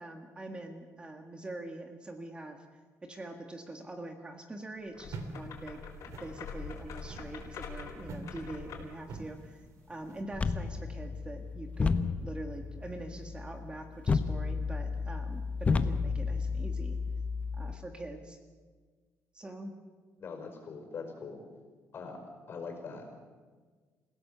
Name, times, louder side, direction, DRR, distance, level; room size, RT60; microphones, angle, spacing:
voice 1, 0.0-2.6 3.0-9.6 9.9-11.9 12.2-17.0 17.5-18.4 19.3-19.8, right 2 dB, 15° right, 5 dB, 1.7 m, -44 dB
sound 1, 4.9-9.0, left 5 dB, 70° left, 4.4 m, -44 dB
sound 2, 5.1-10.2, right 3 dB, 65° right, 2.7 m, -46 dB
sound 3, 10.3-17.7, left 4 dB, 25° left, 1.0 m, -32 dB
voice 2, 20.2-21.4 21.9-22.2 22.5-23.1, left 4 dB, 45° left, 4 dB, 5.1 m, -42 dB
27.5 x 16.5 x 6.9 m, 1.5 s
cardioid pair, 140°, 6 cm